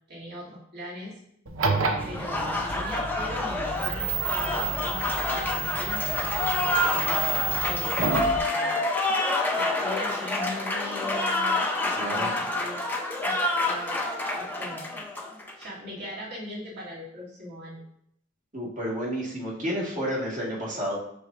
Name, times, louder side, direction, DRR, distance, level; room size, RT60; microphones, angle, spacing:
voice 1, 0.1-1.1 2.0-6.4 7.0-8.8 9.5-13.4 13.6-14.0 14.3-15.0 15.5-17.8, left 1 dB, 55° right, -8 dB, 2.6 m, -40 dB
sound 1, 1.5-8.4, right 3 dB, 75° right, 0.7 m, -30 dB
Applause, 2.0-15.7, left 2 dB, 10° left, 0.6 m, -28 dB
voice 2, 11.9-12.4 18.5-21.0, equal, 40° right, -5 dB, 1.9 m, -31 dB
6.6 x 6.2 x 2.5 m, 0.73 s
head